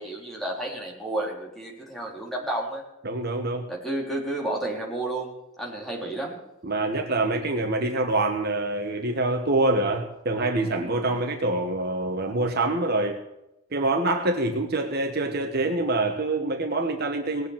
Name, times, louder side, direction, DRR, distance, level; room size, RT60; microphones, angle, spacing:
voice 1, 0.0-2.8 3.7-6.4 10.8-11.1, right 1 dB, ahead, -2 dB, 3.5 m, -31 dB
voice 2, 3.0-3.7 6.6-13.2 13.7-17.5, right 2 dB, 50° right, 4 dB, 1.3 m, -25 dB
18.5 x 8.1 x 7.3 m, 0.89 s
head